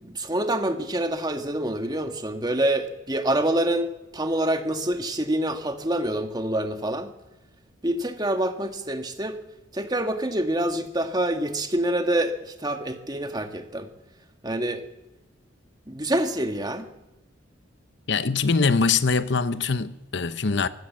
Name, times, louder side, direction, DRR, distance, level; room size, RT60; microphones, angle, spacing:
voice 1, 0.0-7.1 7.8-9.4 9.7-13.9 14.4-14.8 15.9-16.9, right 1 dB, 20° right, 1.8 m, -26 dB
voice 2, 18.1-20.7, left 4 dB, 60° left, 0.8 m, -23 dB
24.0 x 16.0 x 7.4 m
head